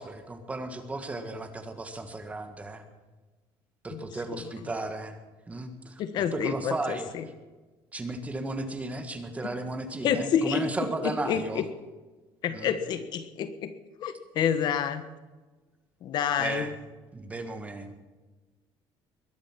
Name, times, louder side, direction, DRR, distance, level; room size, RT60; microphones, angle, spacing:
voice 1, 0.0-2.8 3.8-5.2 5.5-6.0 6.3-7.1 7.9-11.6 12.5-12.7 16.4-16.7 17.1-18.0, right 2 dB, 15° right, 7 dB, 1.6 m, -35 dB
voice 2, 6.0-7.2 10.0-10.6 11.0-11.6 12.4-13.7 14.0-15.1 16.0-16.7, left 8 dB, 50° left, 11 dB, 1.3 m, -28 dB
21.5 x 11.5 x 6.0 m, 1.2 s
cardioid pair, 155°, 9 cm